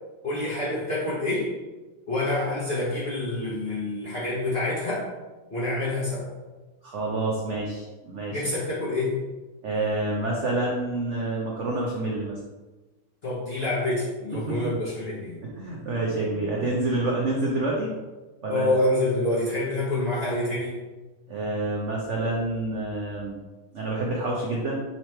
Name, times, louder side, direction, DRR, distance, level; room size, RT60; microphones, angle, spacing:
voice 1, 0.2-1.6 2.1-5.1 5.5-6.3 8.3-9.2 13.2-15.4 18.5-20.8, left 2 dB, 45° left, -7 dB, 0.8 m, -27 dB
voice 2, 6.8-8.4 9.6-12.4 14.5-14.6 15.4-17.9 18.4-18.7 21.3-23.4 23.7-24.8, right 2 dB, 80° right, -3 dB, 0.6 m, -28 dB
3.9 x 3.1 x 4.3 m, 1.2 s
omnidirectional pair, 2.1 m